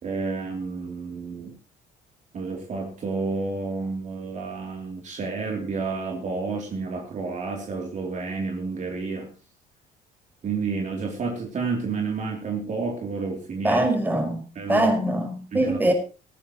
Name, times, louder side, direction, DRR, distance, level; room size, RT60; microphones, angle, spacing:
voice 1, 0.0-1.6 2.3-9.3 10.4-13.9 14.5-14.9 15.5-15.9, right 4 dB, 45° right, 1 dB, 3.3 m, -30 dB
voice 2, 13.6-14.4 14.7-15.9, right 1 dB, 10° right, 3 dB, 5.3 m, -22 dB
18.5 x 14.5 x 3.1 m, 0.34 s
cardioid pair, 110°, 17 cm